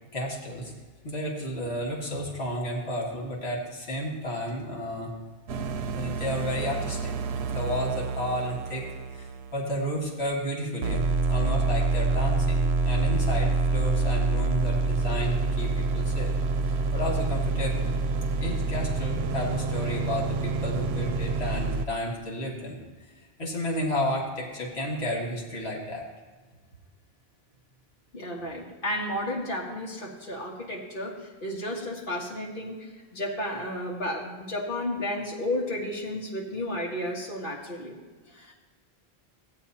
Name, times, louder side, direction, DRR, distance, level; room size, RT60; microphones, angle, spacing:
voice 1, 0.1-0.7 1.0-5.2 5.9-7.1 7.5-8.8 9.1-16.4 16.6-17.9 18.4-22.8 23.4-26.1, equal, 85° left, -2 dB, 2.0 m, -32 dB
sound 1, 5.5-10.4 10.8-21.8, right 3 dB, 85° right, 0.8 m, -27 dB
voice 2, 28.1-38.0 38.3-38.5, left 1 dB, 55° left, -4 dB, 1.8 m, -33 dB
16.0 x 9.0 x 2.9 m, 1.4 s
omnidirectional pair, 1.1 m